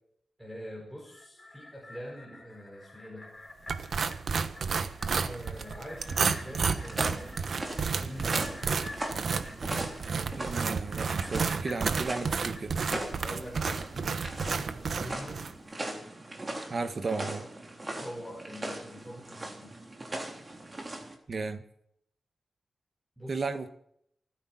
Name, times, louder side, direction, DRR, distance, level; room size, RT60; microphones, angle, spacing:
voice 1, 0.4-3.3 5.2-7.4 7.9-8.6 13.2-15.5 17.9-19.8 23.2-23.4, equal, 5° right, -2 dB, 4.7 m, -44 dB
sound 1, 1.0-13.5 13.9-14.0, left 2 dB, 15° left, 4.9 m, -49 dB
sound 2, 3.7-15.5, right 5 dB, 65° right, 1.2 m, -31 dB
sound 3, 6.0-21.2, right 1 dB, 25° right, 3.4 m, -40 dB
voice 2, 10.4-12.7 16.7-17.4 21.3-21.6 23.3-23.7, right 4 dB, 50° right, 8 dB, 1.6 m, -34 dB
29.0 x 10.0 x 4.4 m, 0.71 s
wide cardioid pair, 120°, 0 cm